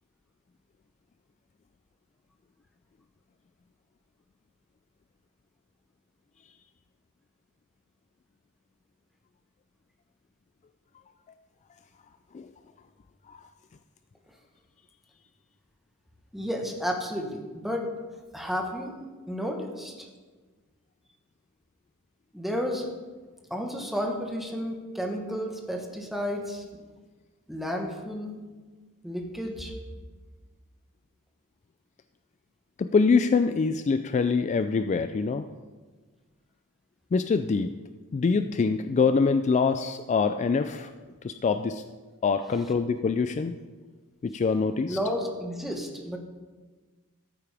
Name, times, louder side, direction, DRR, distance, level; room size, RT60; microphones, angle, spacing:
voice 1, 16.3-17.9 18.3-18.9 19.3-20.1 22.3-22.9 23.5-26.8 27.5-28.4 29.0-29.7 42.5-42.6 44.9-46.2, equal, ahead, 1 dB, 1.2 m, -32 dB
voice 2, 32.8-35.4 37.1-37.7 38.1-40.9 41.2-41.8 42.2-43.6 44.2-45.0, left 4 dB, 30° left, 10 dB, 0.3 m, -24 dB
13.5 x 8.5 x 3.4 m, 1.4 s
head